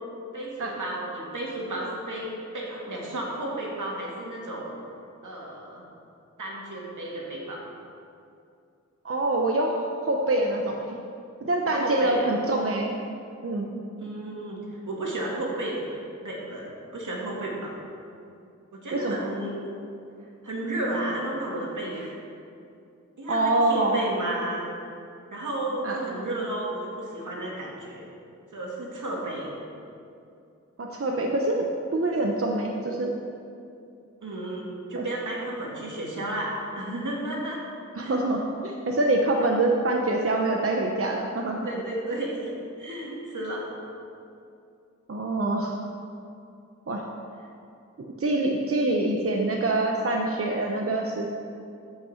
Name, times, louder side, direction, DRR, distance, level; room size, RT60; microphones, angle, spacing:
voice 1, 0.3-4.7 5.2-5.8 6.4-7.6 11.8-12.3 14.0-15.8 16.2-17.8 18.7-19.5 20.4-22.1 23.2-24.6 25.3-28.0 28.5-29.5 34.2-37.6 38.0-38.2 41.6-43.7, right 1 dB, 80° right, -4 dB, 2.5 m, -33 dB
voice 2, 9.0-11.0 11.4-12.9 13.4-13.7 18.9-19.2 23.3-24.0 25.8-26.1 30.8-31.6 31.9-33.1 34.9-35.0 38.0-41.6 45.1-45.7 46.9-47.0 48.0-51.3, right 2 dB, 50° right, 0 dB, 0.8 m, -25 dB
14.0 x 5.7 x 5.7 m, 2.5 s
wide cardioid pair, 105°, 30 cm